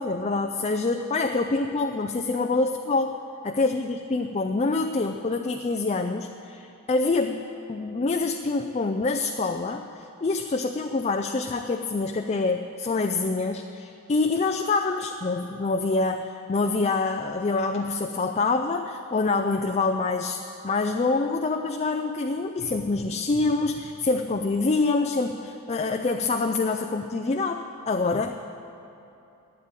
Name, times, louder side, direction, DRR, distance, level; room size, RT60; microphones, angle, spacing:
voice 1, 0.0-3.2 3.4-28.5, left 3 dB, 30° left, 5 dB, 0.4 m, -26 dB
11.5 x 9.0 x 8.9 m, 2.9 s
head